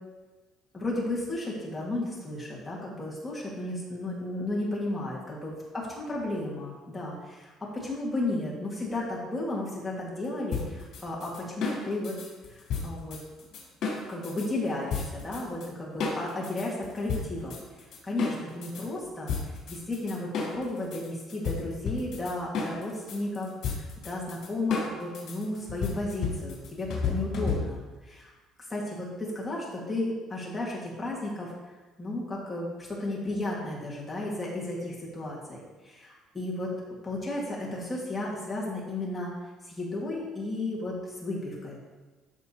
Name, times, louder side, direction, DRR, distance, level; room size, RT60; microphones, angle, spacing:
voice 1, 0.7-5.5 6.1-12.1 12.5-13.2 14.1-17.6 18.0-19.3 19.7-27.8 28.1-28.3 28.7-31.5 32.0-35.6 35.8-36.7 37.0-39.3 39.6-41.8, left 2 dB, 10° left, -6 dB, 1.8 m, -33 dB
sound 1, 10.5-14.5 14.9-15.7 16.0-18.8 19.3-27.9, left 5 dB, 50° left, 3.0 m, -33 dB
13.5 x 6.5 x 2.9 m, 1.2 s
cardioid pair, 175°, 0 cm